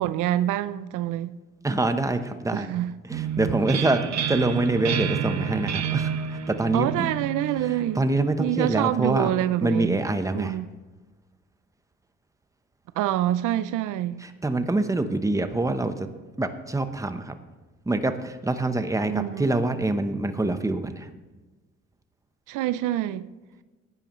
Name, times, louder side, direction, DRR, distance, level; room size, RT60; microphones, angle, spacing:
voice 1, 0.0-1.3 2.5-2.9 6.7-8.1 8.4-10.0 10.3-10.7 13.0-14.3 19.1-19.5 22.5-23.3, right 13 dB, 90° right, 0.5 m, -26 dB
voice 2, 1.6-2.7 3.1-7.1 7.6-9.3 9.6-10.6 14.2-16.1 16.4-17.3 17.9-21.1, right 2 dB, 10° right, 0.9 m, -25 dB
sound 1, 3.1-8.7, right 8 dB, 60° right, 1.0 m, -30 dB
16.0 x 10.0 x 3.1 m
cardioid pair, 90°, 30 cm